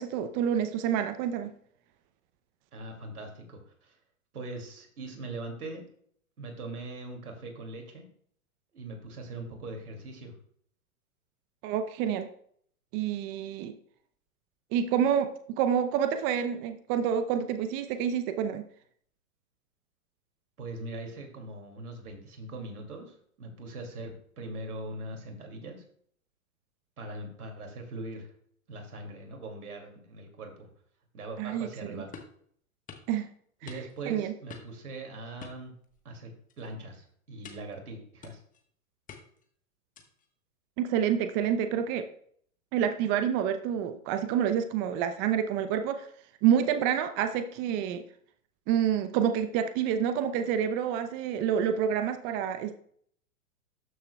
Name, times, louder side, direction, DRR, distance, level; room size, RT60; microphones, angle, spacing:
voice 1, 0.0-1.5 11.6-12.3 12.9-13.7 14.7-18.6 31.4-32.0 33.1-33.3 34.1-34.3 40.8-42.1 42.7-46.1 46.4-48.0 48.7-52.7, right 9 dB, 25° right, 9 dB, 0.5 m, -28 dB
voice 2, 2.7-3.9 4.3-5.8 6.4-8.1 8.7-10.3 20.6-25.8 27.0-28.3 28.7-30.7 31.1-32.1 33.6-35.7 36.0-38.4, right 2 dB, 80° right, 2 dB, 2.4 m, -41 dB
sound 1, 32.1-32.4 32.9-33.1 33.7-34.1 34.5-34.8 35.4-36.2 36.5-36.7 37.4-37.8 38.2-38.6 39.1-39.5 40.0-40.3, left 6 dB, 20° left, 1.1 m, -48 dB
12.5 x 6.6 x 2.2 m, 0.62 s
hypercardioid pair, 115°, 44 cm